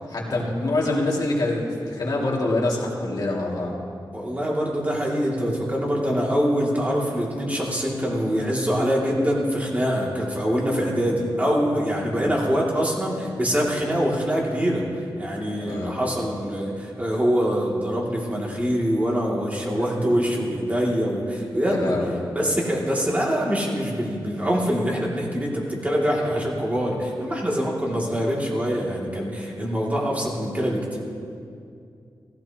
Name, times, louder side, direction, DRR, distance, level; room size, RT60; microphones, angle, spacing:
voice 1, 0.1-3.7 11.9-12.2 15.6-15.9 21.7-22.1, left 2 dB, 55° left, -3 dB, 2.3 m, -25 dB
voice 2, 4.1-14.9 15.2-22.0 22.3-31.0, equal, 20° right, -4 dB, 2.5 m, -24 dB
16.0 x 15.5 x 2.9 m, 2.4 s
wide cardioid pair, 120°, 8 cm